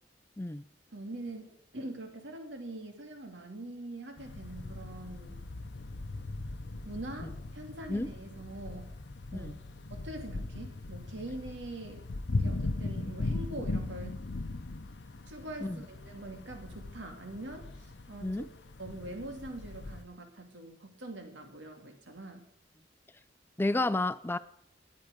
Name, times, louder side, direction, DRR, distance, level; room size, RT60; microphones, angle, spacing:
voice 1, 0.9-5.4 6.8-8.9 9.3-9.6 9.9-12.1 12.4-14.2 15.3-18.4 18.8-22.4, right 1 dB, 90° right, 2.4 m, -43 dB
sound 1, 4.2-20.0, left 2 dB, 70° left, 0.7 m, -39 dB
voice 2, 23.6-24.4, left 2 dB, 15° left, 0.5 m, -31 dB
17.5 x 9.4 x 5.1 m
head